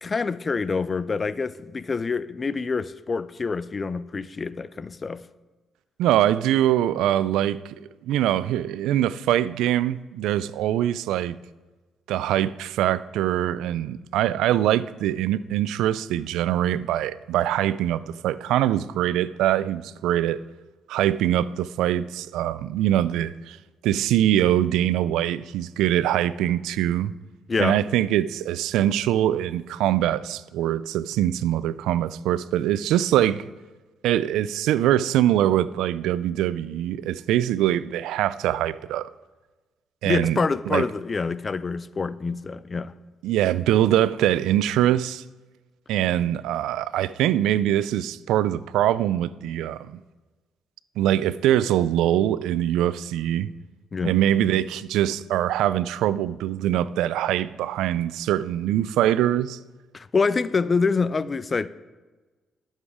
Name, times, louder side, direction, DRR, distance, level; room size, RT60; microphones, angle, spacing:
voice 1, 0.0-5.2 27.5-27.8 40.0-42.9 53.9-54.2 59.9-61.7, left 4 dB, 35° left, 0.4 m, -26 dB
voice 2, 6.0-7.7 8.0-11.4 12.1-20.4 20.9-23.6 23.8-27.1 27.6-33.5 34.0-39.1 40.0-40.4 40.7-40.9 43.2-45.2 45.9-50.0 51.0-53.5 54.0-59.6, right 12 dB, 90° right, 0.3 m, -23 dB
11.5 x 7.4 x 4.9 m
cardioid pair, 90°, 0 cm